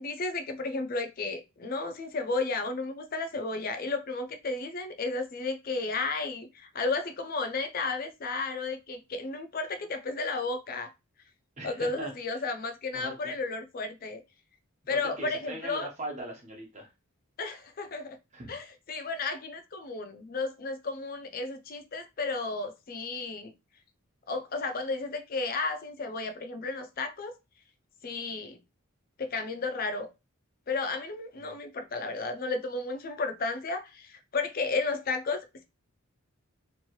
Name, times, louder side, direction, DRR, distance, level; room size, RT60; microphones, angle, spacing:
voice 1, 0.0-10.9 11.6-14.2 14.9-15.9 17.4-18.2 18.5-23.5 24.3-27.3 28.0-28.6 29.2-30.1 30.7-35.6, left 3 dB, 45° left, 0.5 m, -33 dB
voice 2, 11.6-12.4 12.9-13.3 14.9-16.9 18.3-18.5 31.4-31.5, right 1 dB, 30° right, 0.9 m, -41 dB
3.0 x 2.6 x 3.0 m
head